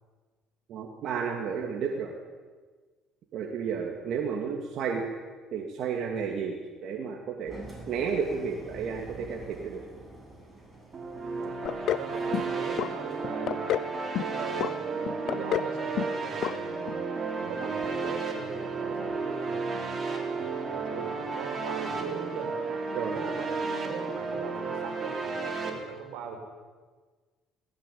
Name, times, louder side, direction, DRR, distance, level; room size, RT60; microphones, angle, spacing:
voice 1, 0.7-2.1 3.3-5.0 5.5-7.6 7.9-9.8 22.9-23.1, right 6 dB, 60° right, 0 dB, 2.6 m, -32 dB
Engine, 7.5-13.3, right 2 dB, 15° right, 7.7 m, -47 dB
sound 1, 10.9-25.7, right 4 dB, 35° right, 3.9 m, -33 dB
sound 2, 11.7-12.1 12.3-12.9 13.2-13.9 14.2-14.7 15.1-15.7 16.0-16.2 16.4-16.5 16.9-17.0, left 11 dB, 60° left, 0.7 m, -29 dB
voice 2, 11.8-13.8 14.2-16.9 17.3-19.8 20.3-22.5 23.1-26.4, right 5 dB, 85° right, 4 dB, 4.6 m, -41 dB
19.5 x 15.5 x 8.7 m, 1.4 s
cardioid pair, 105°, 0 cm